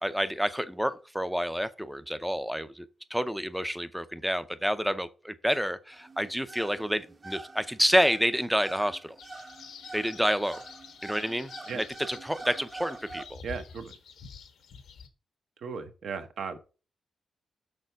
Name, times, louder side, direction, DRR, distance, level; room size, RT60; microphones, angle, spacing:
voice 1, 0.0-9.2 9.9-10.6 11.0-13.4, equal, ahead, 0.6 m, -29 dB
sound 1, 5.9-13.2, right 3 dB, 25° right, 0.8 m, -46 dB
sound 2, 9.2-15.1, left 6 dB, 90° left, 1.3 m, -48 dB
voice 2, 13.4-13.9 15.6-16.6, right 5 dB, 60° right, 1.1 m, -36 dB
6.7 x 6.7 x 4.6 m
wide cardioid pair, 175°, 0 cm